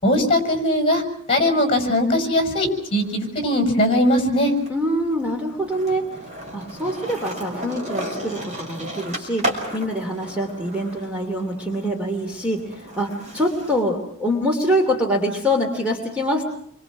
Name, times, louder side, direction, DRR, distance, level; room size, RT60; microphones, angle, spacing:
voice 1, 0.0-1.0 1.3-4.5, left 1 dB, 25° left, 4 dB, 6.2 m, -20 dB
Skateboard, 1.7-3.2 3.6-13.8, right 1 dB, 30° right, 6.0 m, -34 dB
voice 2, 4.7-6.1 6.5-16.4, equal, 5° right, 1 dB, 2.9 m, -24 dB
29.0 x 24.5 x 6.1 m, 0.63 s
head